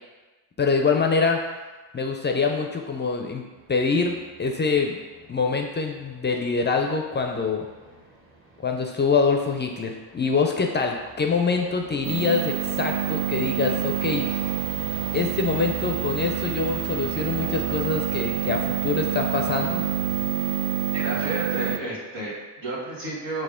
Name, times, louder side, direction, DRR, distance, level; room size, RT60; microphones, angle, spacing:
voice 1, 0.6-1.4 1.9-3.4 3.7-4.1 4.4-4.9 5.3-7.7 8.6-14.4 15.1-19.8, left 4 dB, 25° left, 3 dB, 0.4 m, -25 dB
sound 1, 3.6-20.3, right 1 dB, 25° right, 0.9 m, -44 dB
sound 2, 12.0-21.8, right 10 dB, 50° right, 0.5 m, -27 dB
voice 2, 20.9-23.4, right 2 dB, 80° right, -8 dB, 1.3 m, -31 dB
4.7 x 2.1 x 3.6 m, 1.2 s
supercardioid pair, 55°, 49 cm